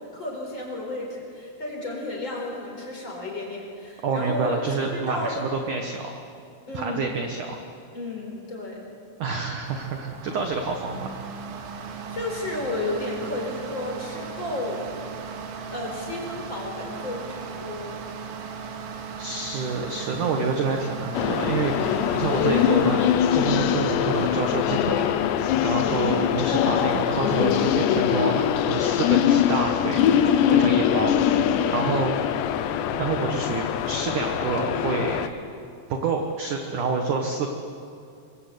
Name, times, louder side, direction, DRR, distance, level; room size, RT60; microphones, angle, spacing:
voice 1, 0.1-5.5 6.7-7.1 7.9-8.9 12.1-14.8 15.7-18.0 30.2-30.7, left 2 dB, 25° left, -1 dB, 5.1 m, -33 dB
voice 2, 4.0-6.1 6.7-7.6 9.2-11.1 19.2-23.0 23.3-24.9 25.3-30.0 30.6-31.1 31.7-32.1 33.0-35.2 35.9-37.5, right 4 dB, 60° right, 3 dB, 2.3 m, -28 dB
sound 1, 9.7-28.6, right 5 dB, 80° right, 4.2 m, -38 dB
sound 2, 21.1-35.3, left 9 dB, 75° left, 3.0 m, -22 dB
24.5 x 24.0 x 8.3 m, 2.5 s
omnidirectional pair, 5.2 m